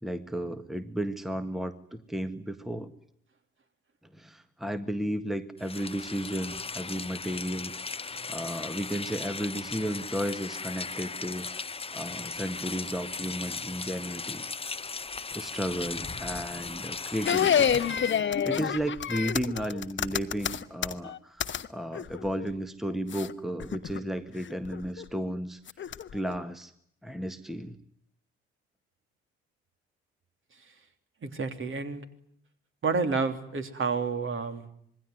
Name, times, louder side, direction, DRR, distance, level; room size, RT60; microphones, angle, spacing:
voice 1, 0.0-2.9 4.1-11.7 11.9-14.4 15.3-17.7 18.2-25.6 26.1-26.7 27.0-27.8, equal, ahead, 10 dB, 1.7 m, -34 dB
Rain, 5.6-18.2, left 4 dB, 15° left, 1.0 m, -37 dB
sound 1, 17.3-21.7 21.9-22.5 23.1-23.3 23.6-24.0 24.5-25.1 25.7-26.3, left 8 dB, 35° left, 1.3 m, -28 dB
voice 2, 31.2-32.0 32.8-34.7, right 4 dB, 40° right, 7 dB, 3.2 m, -29 dB
26.5 x 22.0 x 9.6 m, 0.69 s
figure-of-eight pair, 45°, 32 cm